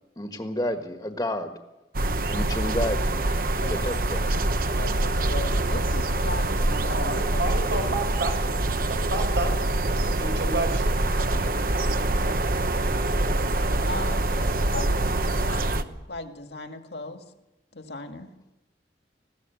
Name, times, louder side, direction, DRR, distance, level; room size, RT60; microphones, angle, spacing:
voice 1, 0.2-1.5 2.3-3.2 3.7-4.2, left 1 dB, 20° left, 5 dB, 1.5 m, -30 dB
sound 1, 1.9-15.8, right 2 dB, 55° right, 1.0 m, -25 dB
voice 2, 3.6-3.9 4.8-7.5 13.9-17.2 17.7-18.3, left 2 dB, 70° left, 5 dB, 2.1 m, -38 dB
voice 3, 6.9-8.4 8.9-9.5 9.9-10.8, right 2 dB, 85° right, 4 dB, 5.8 m, -30 dB
20.5 x 16.0 x 8.3 m, 0.99 s
head